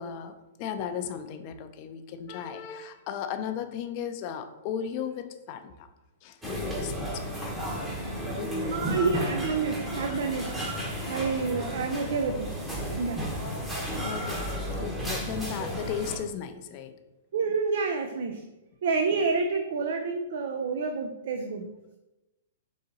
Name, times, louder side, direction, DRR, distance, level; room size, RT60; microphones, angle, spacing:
voice 1, 0.0-5.9 6.2-7.9 8.2-9.1 14.0-14.5 14.8-16.9, left 8 dB, 40° left, 8 dB, 0.4 m, -36 dB
sound 1, 6.4-16.2, equal, 10° right, 0.9 m, -33 dB
voice 2, 8.6-10.6 11.0-13.3 17.3-18.5 18.8-21.7, right 4 dB, 65° right, 5 dB, 0.4 m, -29 dB
4.0 x 2.7 x 3.8 m, 0.99 s
hypercardioid pair, 135°, 0 cm